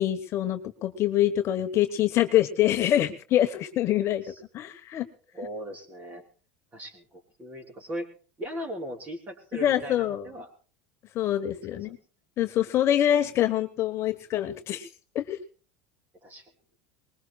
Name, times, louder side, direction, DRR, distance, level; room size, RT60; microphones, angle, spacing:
voice 1, 0.0-4.2 4.5-5.1 9.5-10.3 11.1-12.0 12.4-14.9 15.1-15.4, left 12 dB, 35° left, 7 dB, 1.1 m, -25 dB
voice 2, 5.3-6.2 6.7-8.1 8.4-10.5 11.7-11.8 16.2-16.5, equal, 20° right, 7 dB, 3.4 m, -38 dB
23.0 x 20.5 x 2.3 m, 0.38 s
supercardioid pair, 150°, 8 cm